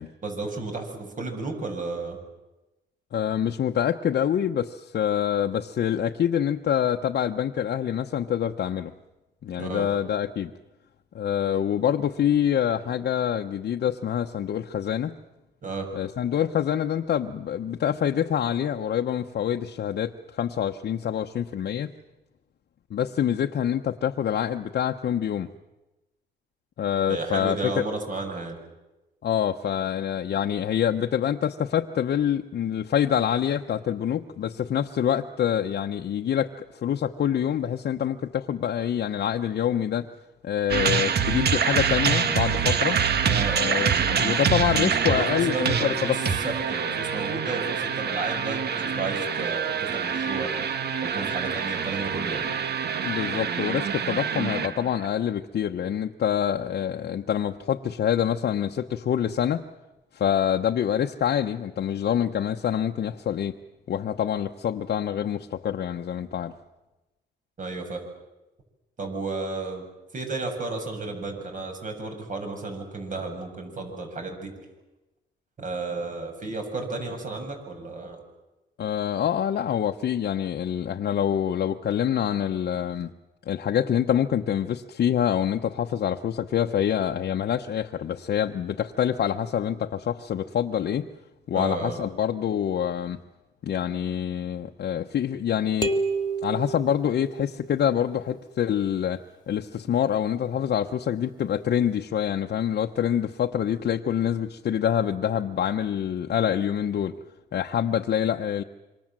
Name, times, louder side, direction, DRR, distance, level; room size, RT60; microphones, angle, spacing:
voice 1, 0.2-2.2 9.6-9.9 15.6-15.9 27.1-28.6 43.3-43.7 45.0-50.6 51.0-52.5 67.6-68.0 69.0-69.8 70.1-74.6 75.6-78.2 91.5-92.0, right 3 dB, 45° right, 4 dB, 7.6 m, -32 dB
voice 2, 3.1-8.9 9.4-10.5 11.1-15.1 15.9-21.9 22.9-25.5 26.8-27.7 29.2-40.1 40.4-43.0 43.5-46.2 53.0-59.6 60.1-63.6 63.9-66.5 78.8-83.1 83.5-91.1 91.5-93.2 93.6-95.9 96.4-107.1 107.5-108.6, left 9 dB, 60° left, 3 dB, 1.1 m, -26 dB
sound 1, 40.7-55.1, right 7 dB, 60° right, 1.8 m, -26 dB
sound 2, 95.8-97.7, right 3 dB, 25° left, 2.0 m, -29 dB
27.0 x 24.5 x 7.6 m, 1.0 s
cardioid pair, 95°, 19 cm